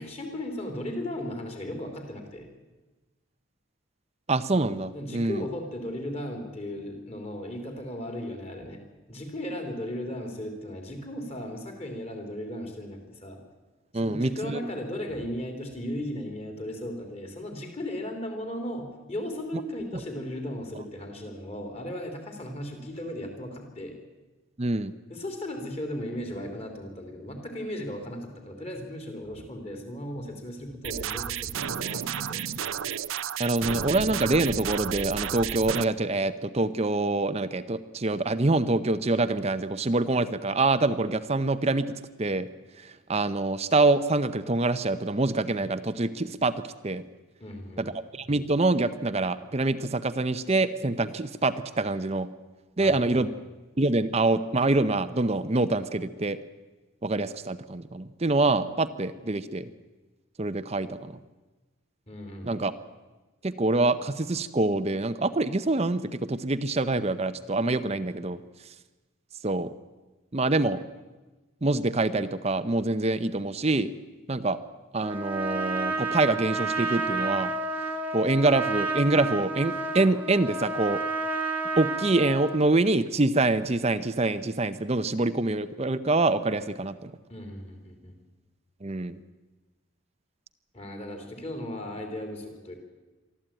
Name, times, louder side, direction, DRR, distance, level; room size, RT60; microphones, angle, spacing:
voice 1, 0.0-2.5 4.9-8.8 9.1-13.4 13.9-24.0 25.1-32.9 47.4-48.0 52.8-53.1 62.1-62.6 87.3-88.2 90.7-92.7, left 1 dB, 30° left, 4 dB, 3.6 m, -36 dB
voice 2, 4.3-5.5 13.9-14.6 24.6-24.9 33.4-41.9 42.2-42.5 42.8-46.5 46.8-47.0 47.8-52.3 52.8-53.3 53.8-56.4 57.0-59.7 60.4-61.1 62.4-62.7 63.4-68.4 69.4-69.7 70.3-70.8 71.6-73.9 74.3-74.6 74.9-77.5 78.1-81.0 81.8-87.1 88.8-89.2, right 2 dB, 30° right, 12 dB, 0.7 m, -25 dB
sound 1, 30.8-35.8, right 8 dB, 70° right, 0.6 m, -32 dB
Trumpet, 75.0-82.7, right 3 dB, 10° right, 1.6 m, -30 dB
23.5 x 14.0 x 9.0 m, 1.2 s
head